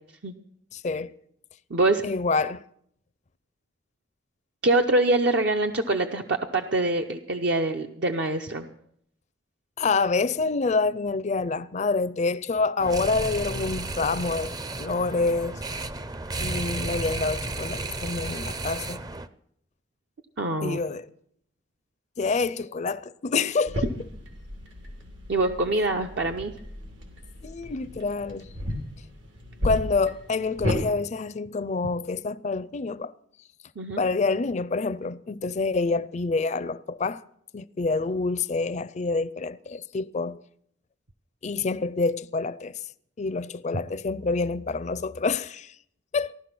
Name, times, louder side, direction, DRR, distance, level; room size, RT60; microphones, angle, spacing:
voice 1, 0.7-1.1 2.0-2.6 9.8-15.6 16.4-19.0 20.6-21.1 22.2-23.9 25.8-25.9 27.4-28.5 29.6-33.1 34.0-37.2 37.5-40.4 41.4-42.7 43.2-45.7 46.1-46.3, left 4 dB, 40° left, 0.5 m, -27 dB
voice 2, 1.7-2.0 4.6-8.6 20.4-20.8 25.3-26.5 33.8-34.0, right 2 dB, 65° right, 0.7 m, -24 dB
sound 1, 12.8-19.3, right 2 dB, 20° right, 0.5 m, -33 dB
sound 2, 23.7-30.8, equal, 90° right, 3.0 m, -34 dB
15.5 x 11.5 x 6.0 m
head